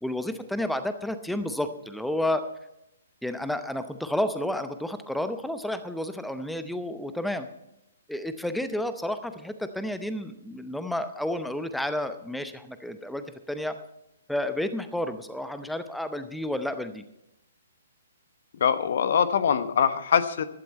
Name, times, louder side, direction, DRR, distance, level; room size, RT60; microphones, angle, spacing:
voice 1, 0.0-2.4 3.2-7.5 8.1-13.7 14.3-17.0, left 1 dB, ahead, 10 dB, 0.7 m, -31 dB
voice 2, 18.6-20.4, left 7 dB, 50° left, 12 dB, 1.1 m, -23 dB
15.5 x 12.0 x 4.3 m, 0.82 s
figure-of-eight pair, 125°, 0 cm